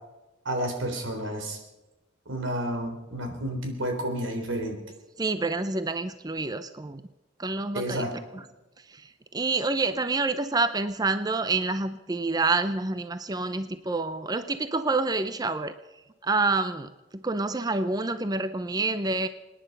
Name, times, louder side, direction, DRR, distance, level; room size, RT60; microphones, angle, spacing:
voice 1, 0.5-1.6 2.3-4.8 7.7-8.1, right 1 dB, 90° right, 4 dB, 3.6 m, -30 dB
voice 2, 5.2-7.0 7.4-8.1 8.3-8.4 8.9-15.7 16.2-19.3, right 3 dB, 20° right, 11 dB, 0.5 m, -28 dB
25.5 x 10.0 x 5.4 m, 1.1 s
head